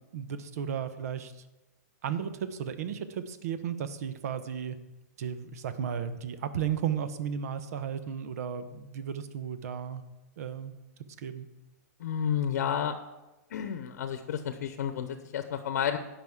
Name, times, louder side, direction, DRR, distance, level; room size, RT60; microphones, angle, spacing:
voice 1, 0.1-1.3 2.0-4.8 5.2-10.0 10.4-10.7 11.2-11.5, right 8 dB, 65° right, 11 dB, 0.9 m, -34 dB
voice 2, 12.0-13.0 13.5-16.0, left 8 dB, 70° left, 8 dB, 0.9 m, -31 dB
17.5 x 6.1 x 3.6 m, 1.0 s
hypercardioid pair, 155°, 9 cm